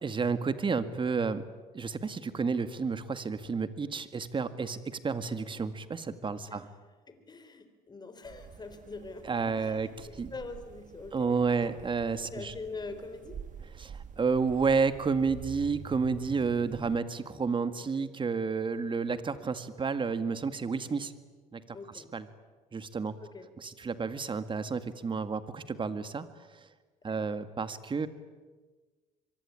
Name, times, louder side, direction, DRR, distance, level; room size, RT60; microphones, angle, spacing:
voice 1, 0.0-1.4 1.7-6.7 9.3-10.3 11.1-12.5 13.8-21.1 21.5-21.6 22.1-22.2 22.7-23.1 23.6-26.3 27.0-28.1, right 5 dB, 30° right, 11 dB, 2.0 m, -31 dB
voice 2, 7.1-11.7 12.3-13.4 17.8-18.1 21.7-22.1 23.2-23.5 27.1-27.2, left 3 dB, 25° left, 9 dB, 3.9 m, -44 dB
sound 1, 8.2-17.0, right 7 dB, 50° right, 1.7 m, -47 dB
24.5 x 24.0 x 10.0 m, 1.3 s
cardioid pair, 110°, 17 cm